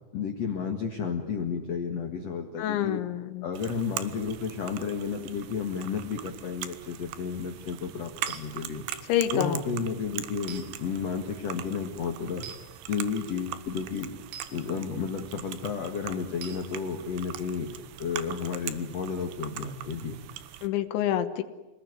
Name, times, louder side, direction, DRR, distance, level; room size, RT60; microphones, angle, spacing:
voice 1, 0.1-3.0 3.4-8.9 9.3-12.5 12.9-14.1 14.5-17.7 18.0-20.2, left 5 dB, 50° left, 3 dB, 2.2 m, -32 dB
voice 2, 2.6-3.5 9.1-9.6 20.6-21.4, left 11 dB, 85° left, 7 dB, 3.5 m, -27 dB
sound 1, 3.5-20.7, right 12 dB, 80° right, 3.3 m, -41 dB
sound 2, 8.3-8.4 10.5-10.6 12.4-12.6 14.3-14.5 16.4-16.6, right 7 dB, 60° right, 4.3 m, -41 dB
28.5 x 20.0 x 9.8 m, 1.1 s
omnidirectional pair, 5.2 m